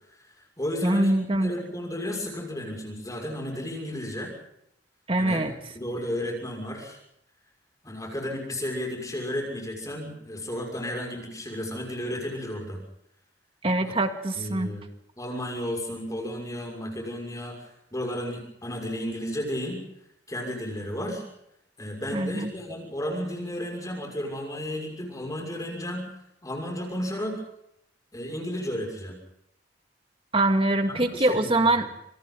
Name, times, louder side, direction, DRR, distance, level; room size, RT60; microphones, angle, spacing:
voice 1, 0.2-1.1 1.4-4.3 5.2-5.4 5.7-7.0 7.8-12.8 13.8-13.9 14.3-14.8 15.2-19.8 20.3-21.2 21.8-26.1 26.4-27.4 28.1-29.2 30.9-31.5, left 1 dB, 20° left, 1 dB, 6.3 m, -33 dB
voice 2, 0.8-1.5 5.1-5.5 13.6-14.7 22.1-22.5 30.3-32.0, right 2 dB, 30° right, 6 dB, 2.2 m, -24 dB
28.0 x 27.5 x 4.1 m, 0.76 s
head